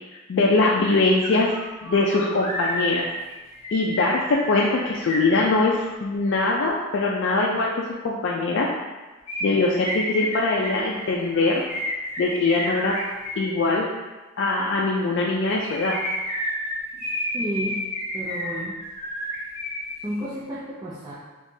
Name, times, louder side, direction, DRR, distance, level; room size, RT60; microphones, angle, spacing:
voice 1, 0.3-1.5 1.8-3.1 3.7-8.7 9.4-11.6 12.2-13.0 13.4-13.9 14.4-16.0, left 3 dB, 65° left, -3 dB, 0.4 m, -22 dB
sound 1, 0.8-0.9 1.2-6.0 9.3-13.5 15.3-19.9 20.2-20.3, equal, 35° left, 1.0 m, -31 dB
voice 2, 17.3-17.8 18.1-18.8 19.2-19.3 20.0-21.1, equal, 20° right, -8 dB, 0.4 m, -31 dB
3.6 x 2.9 x 2.7 m, 1.2 s
head